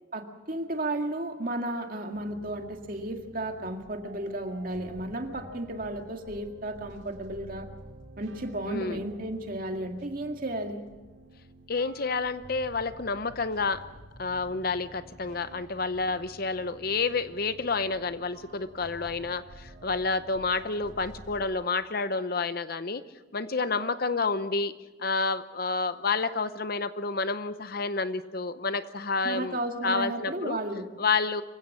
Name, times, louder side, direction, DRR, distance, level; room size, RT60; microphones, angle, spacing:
voice 1, 0.1-7.7 8.2-10.8 29.2-30.9, right 1 dB, 45° right, 4 dB, 2.1 m, -33 dB
sound 1, 2.1-21.5, right 1 dB, 80° right, 5.0 m, -50 dB
voice 2, 8.7-9.0 11.7-13.8 14.2-23.0 23.3-24.7 25.0-29.6 29.8-30.6 31.0-31.4, left 4 dB, 50° left, 12 dB, 0.8 m, -29 dB
25.5 x 16.0 x 7.3 m, 1.2 s
head